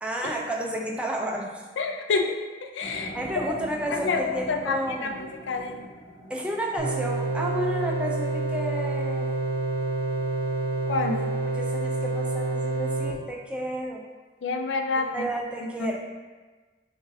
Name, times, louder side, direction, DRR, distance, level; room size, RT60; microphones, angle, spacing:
voice 1, 0.0-1.6 3.1-5.2 6.3-9.3 11.1-11.3 11.5-14.0 15.0-16.0, right 1 dB, 5° right, -1 dB, 0.4 m, -31 dB
voice 2, 1.8-2.4 2.7-3.1 3.9-5.1 5.5-5.8 10.9-11.2 14.4-15.1 15.8-15.9, left 4 dB, 85° left, 4 dB, 0.4 m, -27 dB
sound 1, 2.8-8.9, equal, 40° left, 1.2 m, -43 dB
sound 2, 6.8-13.1, right 2 dB, 40° right, 0.7 m, -28 dB
6.0 x 2.6 x 2.6 m, 1.3 s
head